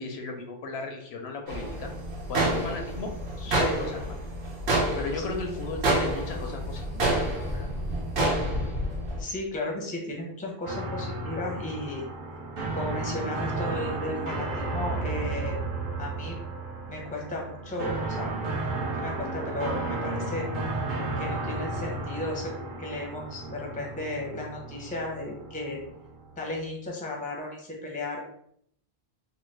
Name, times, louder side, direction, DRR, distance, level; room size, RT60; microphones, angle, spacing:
voice 1, 0.0-1.9 2.3-3.1 3.4-4.2 4.9-7.7, left 3 dB, 80° left, 3 dB, 0.8 m, -35 dB
sound 1, 1.5-9.2, right 1 dB, 75° right, 1.2 m, -28 dB
voice 2, 9.2-12.1 12.7-15.6 16.0-16.4 16.9-18.3 18.9-20.5 21.2-25.8 26.4-28.2, left 2 dB, 10° left, 0 dB, 0.5 m, -34 dB
sound 2, 10.6-26.6, right 2 dB, 55° right, 0.7 m, -33 dB
3.0 x 2.2 x 3.2 m, 0.68 s
omnidirectional pair, 1.1 m